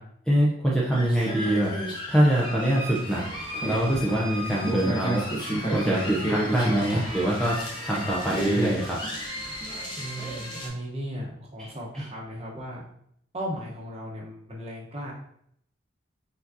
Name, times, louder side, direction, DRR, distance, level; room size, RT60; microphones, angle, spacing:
voice 1, 0.3-1.7 2.1-3.2 3.6-5.2 5.7-7.6 7.8-9.0 11.6-11.7 11.9-12.1, right 1 dB, 5° left, -5 dB, 0.6 m, -24 dB
sound 1, 0.9-10.7, right 1 dB, 20° left, 1.0 m, -31 dB
voice 2, 10.0-12.8 13.3-15.1, equal, 30° right, -3 dB, 1.0 m, -36 dB
4.8 x 3.9 x 2.7 m, 0.69 s
head